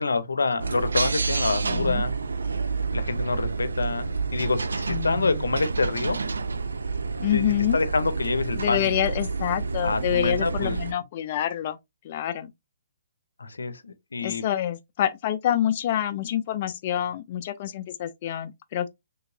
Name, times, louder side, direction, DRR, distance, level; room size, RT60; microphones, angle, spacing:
voice 1, 0.0-2.1 2.9-6.2 7.3-8.9 9.8-10.8 13.4-14.4, left 3 dB, 90° left, 0.6 m, -27 dB
sound 1, 0.6-10.9, right 4 dB, 85° right, 0.3 m, -29 dB
voice 2, 1.6-2.0 4.9-5.4 7.2-7.8 8.5-11.8 12.0-12.5 14.2-18.9, left 11 dB, 45° left, 0.3 m, -27 dB
3.3 x 2.8 x 2.6 m
hypercardioid pair, 145°, 0 cm